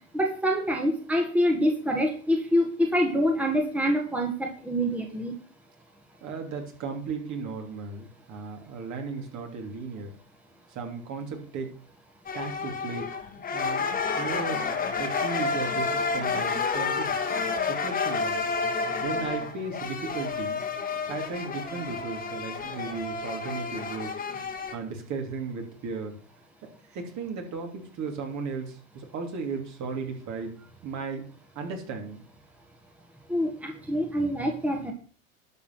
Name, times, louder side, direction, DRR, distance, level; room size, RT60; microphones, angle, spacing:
voice 1, 0.1-5.4 33.3-34.9, equal, 5° right, 2 dB, 1.7 m, -26 dB
voice 2, 6.2-10.1 10.7-11.7 12.3-13.1 13.5-13.8 14.2-14.6 15.0-17.1 17.7-18.5 19.0-20.6 21.1-24.1 24.7-26.1 26.9-30.5 30.8-31.3 31.5-32.2, right 4 dB, 45° right, 3 dB, 3.1 m, -35 dB
sound 1, 12.3-24.8, left 4 dB, 20° left, 1.7 m, -30 dB
11.5 x 5.6 x 6.0 m, 0.43 s
hypercardioid pair, 105°, 41 cm